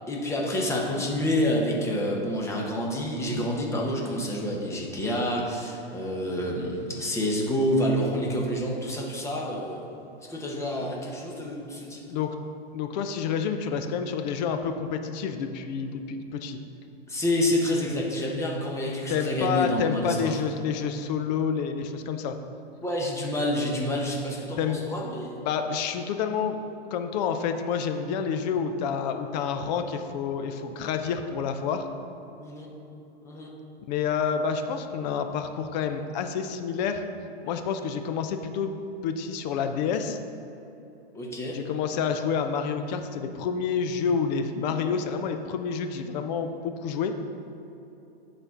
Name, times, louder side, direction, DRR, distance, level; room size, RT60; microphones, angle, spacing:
voice 1, 0.1-9.8 10.3-12.0 17.1-20.4 22.8-25.4 32.4-32.7 33.2-33.5 41.1-41.6, left 1 dB, 10° left, -2 dB, 1.2 m, -28 dB
voice 2, 12.7-16.6 19.1-22.4 24.6-24.8 25.4-26.6 26.9-31.9 33.9-37.0 37.4-38.8 39.0-40.2 41.5-47.1, left 6 dB, 40° left, 7 dB, 0.7 m, -28 dB
9.1 x 4.3 x 6.0 m, 2.9 s
hypercardioid pair, 130°, 32 cm